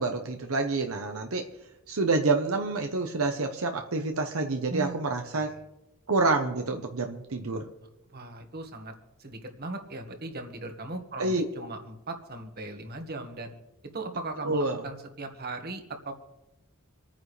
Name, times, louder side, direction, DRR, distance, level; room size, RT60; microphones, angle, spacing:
voice 1, 0.0-1.5 1.9-5.5 6.1-7.7 11.2-11.4 14.4-14.8, right 3 dB, 75° right, 4 dB, 1.0 m, -28 dB
voice 2, 4.7-5.0 5.3-5.5 8.1-8.9 9.2-13.5 13.9-16.1, right 2 dB, 45° right, 5 dB, 1.8 m, -38 dB
27.5 x 9.6 x 3.3 m, 0.99 s
head